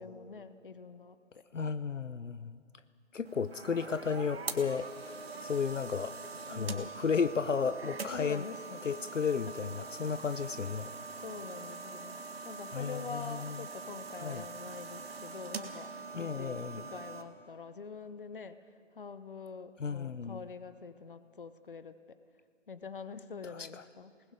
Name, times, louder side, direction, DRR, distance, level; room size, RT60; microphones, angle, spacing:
voice 1, 0.0-1.4 6.5-7.0 8.1-8.8 9.5-9.6 11.2-12.2 12.4-22.2 22.7-24.3, left 5 dB, 40° left, 13 dB, 0.9 m, -45 dB
voice 2, 1.5-2.6 3.1-5.1 5.4-6.2 6.5-8.4 8.8-10.9 12.7-13.6 14.2-14.4 16.1-16.9 19.8-20.4 23.6-23.7, left 6 dB, 70° left, 14 dB, 0.7 m, -33 dB
sound 1, 3.2-17.2, right 4 dB, 50° right, 1.7 m, -43 dB
27.5 x 19.5 x 5.1 m, 2.3 s
figure-of-eight pair, 155°, 39 cm